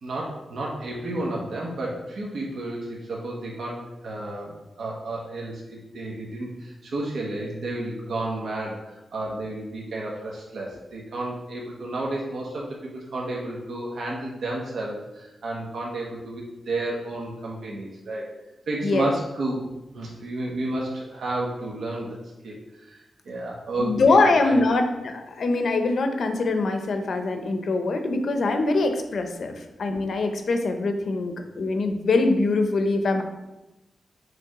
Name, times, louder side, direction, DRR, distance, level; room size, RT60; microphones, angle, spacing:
voice 1, 0.0-18.3 18.7-19.6 19.9-22.2 22.4-24.6 29.4-29.5, right 2 dB, 80° right, -3 dB, 1.1 m, -32 dB
voice 2, 18.8-19.1 23.8-33.2, left 3 dB, 65° left, 6 dB, 0.8 m, -23 dB
6.9 x 3.3 x 4.8 m, 1.0 s
wide cardioid pair, 115°, 0 cm